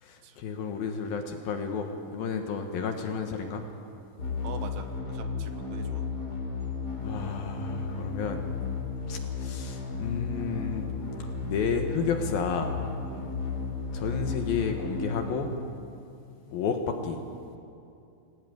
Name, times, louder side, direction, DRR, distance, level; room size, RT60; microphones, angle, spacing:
voice 1, 0.0-3.6 7.0-8.4 9.1-10.9 11.4-12.7 13.9-15.5 16.5-17.2, left 6 dB, 65° left, 4 dB, 2.6 m, -31 dB
sound 1, 4.2-16.1, left 4 dB, 25° left, 2.7 m, -34 dB
voice 2, 4.4-6.1 13.1-13.3, right 7 dB, 75° right, 7 dB, 3.1 m, -43 dB
22.0 x 18.0 x 9.3 m, 2.6 s
omnidirectional pair, 5.2 m